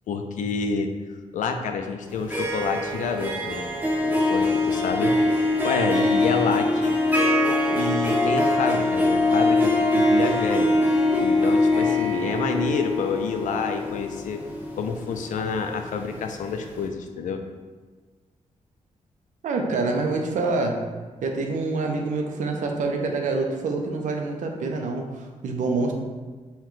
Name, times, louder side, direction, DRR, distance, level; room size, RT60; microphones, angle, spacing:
voice 1, 0.1-3.7 4.0-5.1 5.6-7.0 7.6-10.7 11.2-14.4 14.8-17.4, left 5 dB, 85° left, 5 dB, 0.4 m, -28 dB
Harp, 2.1-16.1, left 2 dB, 15° right, 0.7 m, -23 dB
voice 2, 19.4-20.8 21.2-25.9, right 3 dB, 85° right, 3 dB, 0.6 m, -26 dB
5.6 x 2.2 x 3.1 m, 1.4 s
wide cardioid pair, 135°, 13 cm